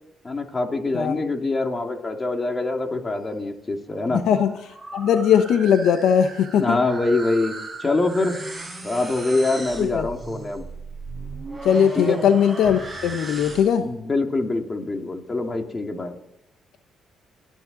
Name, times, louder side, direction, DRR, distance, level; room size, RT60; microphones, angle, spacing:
voice 1, 0.2-4.2 6.6-7.5 7.8-8.4 8.8-10.6 11.9-12.2 13.8-16.2, left 2 dB, 25° left, 4 dB, 2.4 m, -24 dB
sound 1, 3.9-13.9, right 2 dB, 10° right, 4.8 m, -37 dB
voice 2, 4.1-4.5 4.9-6.8 9.8-10.1 11.6-13.8, left 8 dB, 80° left, 8 dB, 1.0 m, -19 dB
28.5 x 10.0 x 4.0 m, 0.87 s
cardioid pair, 90°, 0 cm